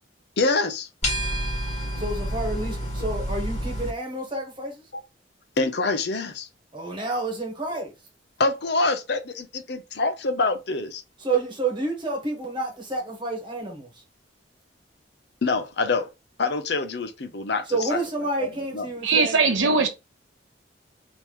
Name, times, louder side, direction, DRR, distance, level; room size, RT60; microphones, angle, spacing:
voice 1, 0.4-0.9 5.6-6.5 8.4-11.0 15.4-16.1 16.4-17.6 17.9-18.0 18.4-18.9, left 3 dB, 60° left, 0.6 m, -25 dB
sound 1, 1.0-3.9, equal, 35° left, 1.9 m, -28 dB
voice 2, 2.0-4.9 6.7-7.9 11.2-14.0 17.6-19.4, right 2 dB, 25° right, 1.4 m, -29 dB
voice 3, 19.0-19.9, right 4 dB, 85° right, 0.9 m, -20 dB
3.6 x 2.9 x 3.1 m
head